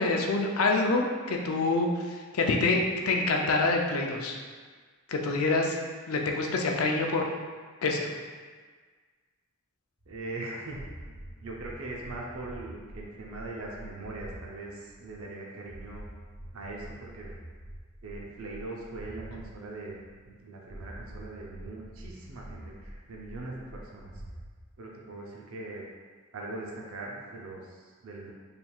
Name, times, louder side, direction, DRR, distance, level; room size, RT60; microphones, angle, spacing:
voice 1, 0.0-4.4 5.1-5.8 6.1-7.3 7.8-8.1, left 3 dB, 75° left, 1 dB, 0.5 m, -26 dB
sound 1, 10.0-14.5 14.8-19.5 19.8-20.4 20.6-24.5, right 1 dB, 20° right, 1.1 m, -46 dB
voice 2, 10.1-10.9 11.4-16.0 16.5-17.4 18.0-20.0 20.3-24.1 24.8-25.8 26.3-28.3, right 2 dB, 75° right, -2 dB, 0.6 m, -41 dB
4.3 x 3.4 x 2.3 m, 1.5 s
head